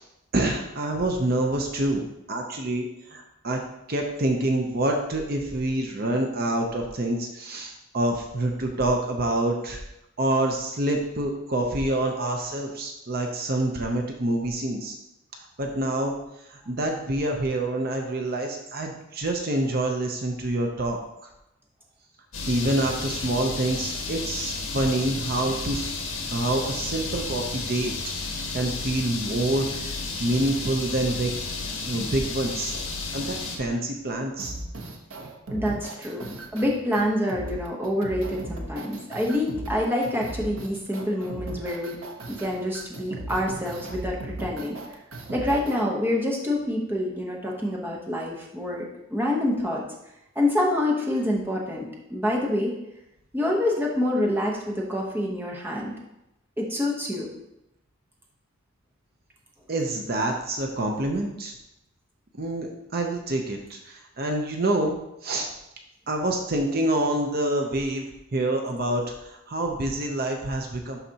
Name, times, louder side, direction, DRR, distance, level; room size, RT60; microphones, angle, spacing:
voice 1, 0.3-3.6 3.9-9.8 10.2-14.9 15.6-16.1 16.5-21.0 22.5-25.9 26.3-31.3 31.9-34.5 59.7-61.5 62.4-65.0 65.2-65.5 66.1-71.0, right 1 dB, 45° right, 2 dB, 0.7 m, -27 dB
sound 1, 22.3-33.6, left 3 dB, 70° left, 1.4 m, -32 dB
sound 2, 34.4-45.8, right 1 dB, 70° right, 0.9 m, -37 dB
voice 2, 35.5-42.0 42.3-44.8 45.3-49.8 50.4-52.7 53.3-55.9 56.6-57.3, left 1 dB, 10° right, -2 dB, 0.9 m, -27 dB
11.5 x 4.1 x 2.8 m, 0.88 s
head